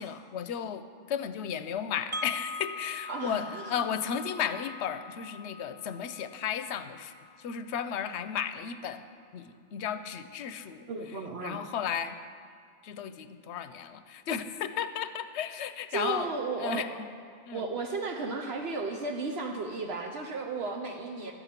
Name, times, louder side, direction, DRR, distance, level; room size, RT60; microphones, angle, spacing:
voice 1, 0.0-7.1 7.4-9.0 9.3-10.9 11.4-12.2 12.8-16.3 16.6-17.1 17.5-17.6, left 8 dB, 90° left, 11 dB, 0.9 m, -34 dB
Wind chime, 2.1-8.1, left 2 dB, 40° right, 0.4 m, -43 dB
voice 2, 3.1-3.9 10.9-11.6 15.9-16.8 17.5-21.3, right 3 dB, 70° right, 2 dB, 1.0 m, -34 dB
11.5 x 8.2 x 5.7 m, 2.2 s
omnidirectional pair, 1.1 m